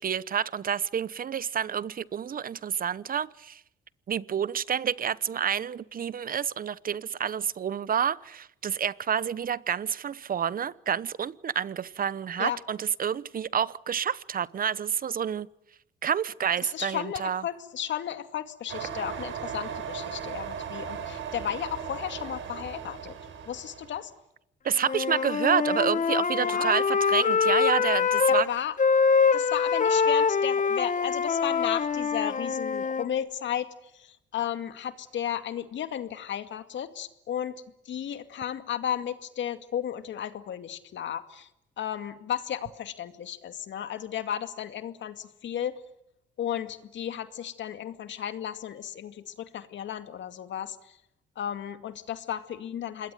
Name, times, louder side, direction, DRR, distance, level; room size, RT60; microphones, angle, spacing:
voice 1, 0.0-3.6 4.1-15.5 16.0-17.4 24.6-28.5, right 8 dB, 45° right, 0.9 m, -29 dB
voice 2, 16.6-23.1 23.5-24.1 26.4-26.7 28.2-28.7 29.3-33.7 33.9-41.5 41.8-45.8 46.4-51.0 51.4-53.1, left 10 dB, 70° left, 2.3 m, -34 dB
sound 1, 18.7-24.0, right 7 dB, 75° right, 5.1 m, -37 dB
Wind instrument woodwind instrument, 24.8-28.5 28.8-33.1, left 5 dB, 40° left, 1.5 m, -24 dB
27.5 x 21.0 x 9.3 m
cardioid pair, 90°, 20 cm